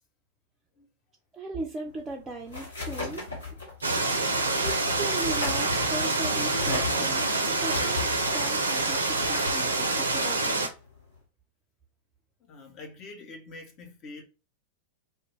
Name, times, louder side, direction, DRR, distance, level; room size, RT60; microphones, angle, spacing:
voice 1, 1.3-3.3 4.6-10.7, right 2 dB, 15° right, 0.4 m, -38 dB
sound 1, 1.9-11.2, left 3 dB, 75° left, 1.1 m, -38 dB
sound 2, 3.8-10.7, right 3 dB, 75° right, 0.4 m, -26 dB
voice 2, 12.5-14.2, left 3 dB, 35° left, 0.6 m, -45 dB
2.2 x 2.1 x 3.0 m
figure-of-eight pair, 90°, 0 cm